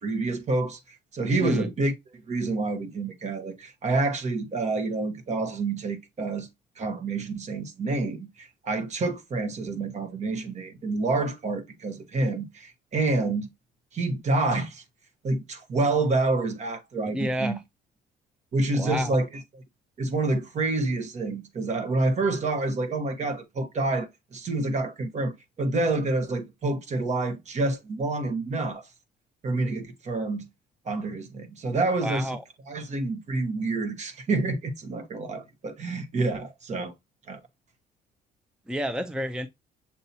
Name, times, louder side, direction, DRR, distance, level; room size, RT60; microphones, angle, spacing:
voice 1, 0.0-1.9 2.3-6.5 6.8-13.5 13.9-14.8 15.2-17.6 18.5-19.3 20.0-28.9 29.4-30.5 30.9-32.3 32.7-36.9 37.3-37.4, right 2 dB, 45° right, 1.1 m, -28 dB
voice 2, 17.1-17.6 18.8-19.2 32.0-32.4 38.7-39.5, equal, 5° right, 0.5 m, -29 dB
7.0 x 2.8 x 2.7 m
cardioid pair, 110°, 17 cm